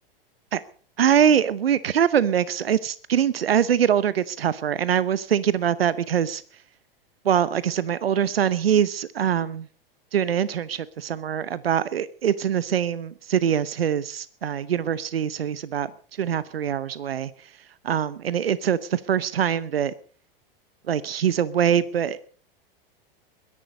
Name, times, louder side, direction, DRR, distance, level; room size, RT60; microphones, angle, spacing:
voice 1, 1.0-6.4 7.2-9.7 10.1-15.9 16.2-17.5 17.8-19.9 20.9-22.3, right 9 dB, 85° right, 0.9 m, -23 dB
21.5 x 11.0 x 5.2 m
hypercardioid pair, 100°, 29 cm